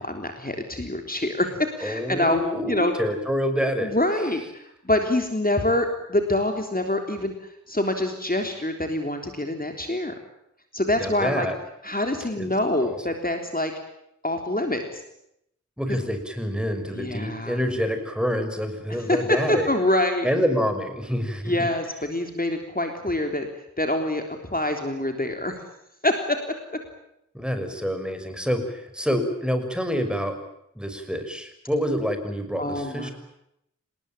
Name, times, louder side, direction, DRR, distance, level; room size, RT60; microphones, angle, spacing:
voice 1, 0.0-1.5 1.8-2.9 3.8-10.1 10.7-11.5 11.8-13.7 14.2-15.0 16.9-17.6 18.9-19.2 19.5-20.3 21.4-23.5 23.8-24.2 24.5-25.6 26.0-26.4 32.6-33.1, left 1 dB, 30° left, 4 dB, 3.6 m, -25 dB
voice 2, 1.8-3.9 11.0-11.6 12.4-12.5 12.8-13.0 15.8-19.7 20.2-21.6 27.3-30.3 30.8-33.1, equal, 5° right, 7 dB, 6.0 m, -27 dB
27.5 x 20.5 x 9.1 m, 0.78 s
wide cardioid pair, 50°, 30 cm